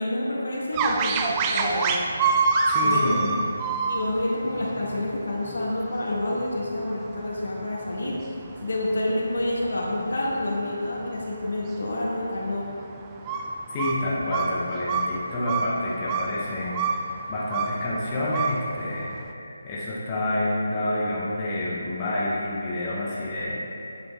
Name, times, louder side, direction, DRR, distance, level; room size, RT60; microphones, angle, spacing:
voice 1, 0.0-1.9 2.8-3.1 3.9-8.2 8.6-12.7, left 1 dB, 75° left, -4 dB, 1.6 m, -28 dB
sound 1, 0.7-19.3, right 4 dB, 20° right, 0.3 m, -28 dB
voice 2, 2.7-3.4 13.7-23.7, left 1 dB, 20° left, -7 dB, 1.0 m, -28 dB
8.3 x 5.2 x 3.7 m, 2.7 s
figure-of-eight pair, 165°, 0 cm